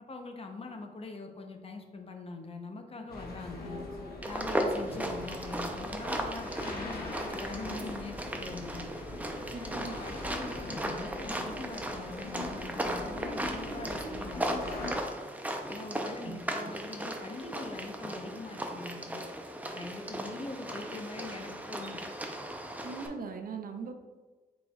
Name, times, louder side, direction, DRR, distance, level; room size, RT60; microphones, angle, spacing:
voice 1, 0.1-3.8 4.2-9.1 9.5-14.7 15.7-19.3 19.7-22.1, left 3 dB, 40° left, 4 dB, 0.6 m, -43 dB
sound 1, 3.1-14.9, left 2 dB, 75° left, 0.9 m, -42 dB
sound 2, 4.2-23.1, right 1 dB, 10° right, 0.5 m, -37 dB
voice 2, 9.5-9.9 16.2-16.7 22.8-23.9, right 4 dB, 65° right, 6 dB, 0.5 m, -40 dB
5.4 x 4.3 x 2.2 m, 1.3 s
wide cardioid pair, 115°, 16 cm